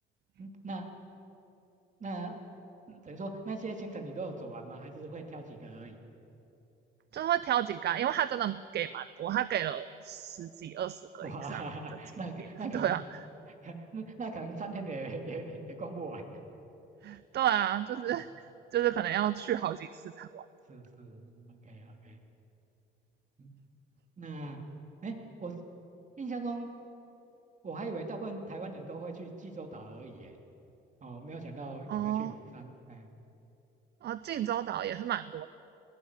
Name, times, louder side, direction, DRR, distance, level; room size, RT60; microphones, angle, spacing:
voice 1, 0.4-0.9 2.0-2.4 2.9-5.9 11.2-13.0 13.6-16.4 20.7-22.2 23.4-23.5 24.2-24.6 25.0-25.5 26.2-26.7 27.6-30.3 31.0-33.1, right 3 dB, 40° right, 4 dB, 2.9 m, -40 dB
voice 2, 7.1-11.6 12.6-13.2 17.0-18.3 18.7-20.5 31.9-32.3 34.0-35.5, right 11 dB, 55° right, 15 dB, 0.5 m, -31 dB
21.0 x 16.0 x 8.3 m, 2.9 s
cardioid pair, 90°, 20 cm